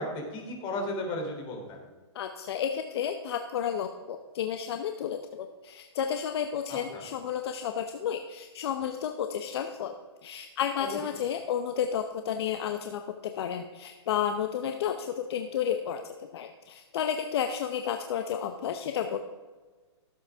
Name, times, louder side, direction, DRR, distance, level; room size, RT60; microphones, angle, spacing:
voice 1, 0.0-1.8 6.7-7.0 10.8-11.0, left 1 dB, 30° left, 1 dB, 3.1 m, -35 dB
voice 2, 2.1-9.9 10.2-19.2, left 8 dB, 60° left, 6 dB, 0.8 m, -32 dB
16.5 x 8.0 x 3.5 m, 1.4 s
hypercardioid pair, 140°, 15 cm